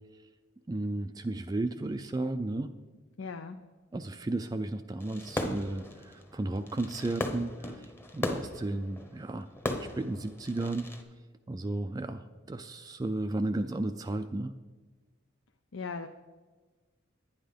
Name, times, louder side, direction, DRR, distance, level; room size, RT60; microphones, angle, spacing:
voice 1, 0.7-2.7 3.9-9.5 9.8-10.9 11.5-14.5, right 2 dB, 20° right, 8 dB, 0.3 m, -34 dB
voice 2, 3.2-3.6 15.7-16.1, left 5 dB, 80° left, 7 dB, 0.6 m, -38 dB
Fireworks, 5.0-11.0, left 1 dB, 10° left, 0.9 m, -37 dB
11.0 x 9.6 x 5.1 m, 1.4 s
head